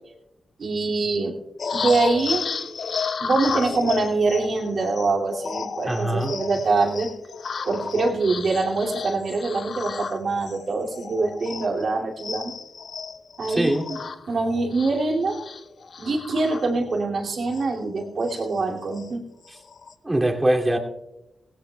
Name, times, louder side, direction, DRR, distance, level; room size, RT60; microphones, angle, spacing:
voice 1, 0.6-1.4 1.7-2.4 3.2-7.1 7.6-12.5 13.4-13.7 14.3-15.4 16.0-19.2, right 3 dB, 65° right, 0 dB, 2.5 m, -24 dB
sound 1, 1.6-11.9 12.2-17.1 17.5-17.7 17.9-19.1 19.5-19.9, left 5 dB, 65° left, 0.6 m, -33 dB
voice 2, 5.9-6.4 13.5-13.9 20.0-20.8, right 1 dB, 25° right, 1 dB, 2.5 m, -22 dB
17.0 x 17.0 x 2.3 m, 0.90 s
supercardioid pair, 45°, 0 cm